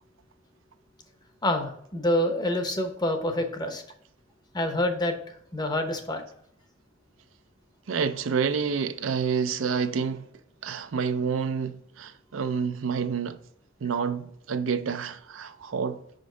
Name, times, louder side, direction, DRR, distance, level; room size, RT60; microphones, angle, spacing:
voice 1, 1.4-3.8 4.5-5.1 5.5-6.2, left 1 dB, 20° left, 0.8 m, -27 dB
voice 2, 7.9-10.2 10.6-13.4 13.8-16.0, right 6 dB, 75° right, 0.5 m, -28 dB
5.2 x 5.1 x 3.7 m
head